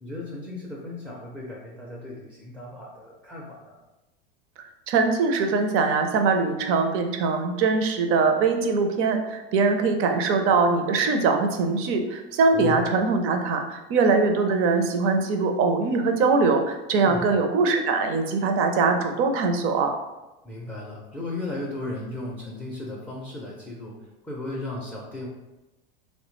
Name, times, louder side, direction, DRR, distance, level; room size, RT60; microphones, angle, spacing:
voice 1, 0.0-3.8 12.5-12.8 17.0-17.3 20.4-24.0 24.2-25.3, left 2 dB, 5° left, -4 dB, 0.4 m, -35 dB
voice 2, 4.9-19.9, right 4 dB, 45° right, 5 dB, 0.5 m, -22 dB
3.2 x 2.1 x 3.0 m, 1.0 s
supercardioid pair, 115°, 29 cm